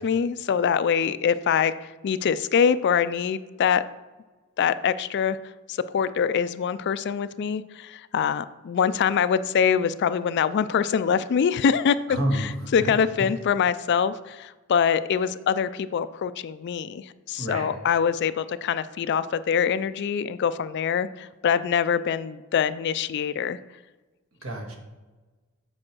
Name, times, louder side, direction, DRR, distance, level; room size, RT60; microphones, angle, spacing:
voice 1, 0.0-3.8 4.6-5.4 5.7-12.0 12.3-23.6, left 7 dB, 50° left, 14 dB, 0.3 m, -24 dB
voice 2, 12.1-12.9 13.2-13.3 17.4-17.7 24.4-24.8, right 1 dB, 65° right, 1 dB, 1.6 m, -29 dB
7.6 x 4.8 x 6.1 m, 1.2 s
head